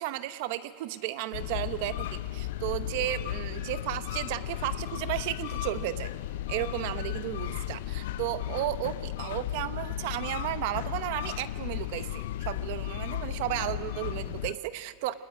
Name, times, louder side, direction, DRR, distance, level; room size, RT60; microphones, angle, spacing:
voice 1, 0.0-6.1 6.5-15.1, right 14 dB, 55° right, 13 dB, 0.9 m, -34 dB
sound 1, 1.3-14.5, left 13 dB, 75° left, 0.5 m, -35 dB
25.5 x 20.0 x 9.1 m, 2.2 s
supercardioid pair, 165°, 0 cm